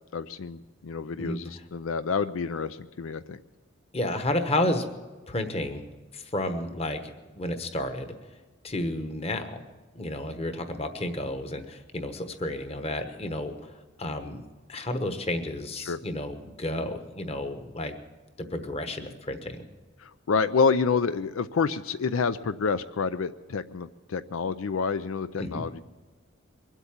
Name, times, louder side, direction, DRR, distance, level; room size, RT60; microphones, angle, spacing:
voice 1, 0.1-3.4 15.8-16.0 20.0-25.8, left 5 dB, 85° left, 12 dB, 0.5 m, -28 dB
voice 2, 3.9-4.8 5.3-5.9 6.1-8.1 8.6-9.6 9.9-14.4 14.7-17.9 18.4-19.6 25.4-25.6, left 1 dB, 30° left, 7 dB, 1.2 m, -31 dB
22.5 x 8.2 x 7.2 m, 1.3 s
head